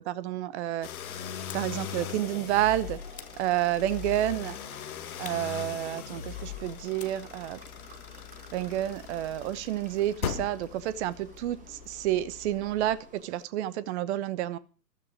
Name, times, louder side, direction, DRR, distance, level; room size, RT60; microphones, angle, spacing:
voice 1, 0.1-0.9 1.5-3.0 3.4-4.6 5.2-7.6 8.5-14.6, right 13 dB, 40° right, 18 dB, 0.9 m, -30 dB
sound 1, 0.8-13.2, left 9 dB, 55° left, 2.1 m, -40 dB
sound 2, 1.1-13.4, right 5 dB, 15° right, 1.8 m, -53 dB
sound 3, 1.5-1.8 3.1-4.1 5.2-6.4 7.0-9.2, left 10 dB, 15° left, 1.0 m, -51 dB
14.0 x 13.0 x 5.0 m, 0.35 s
figure-of-eight pair, 105°, 50 cm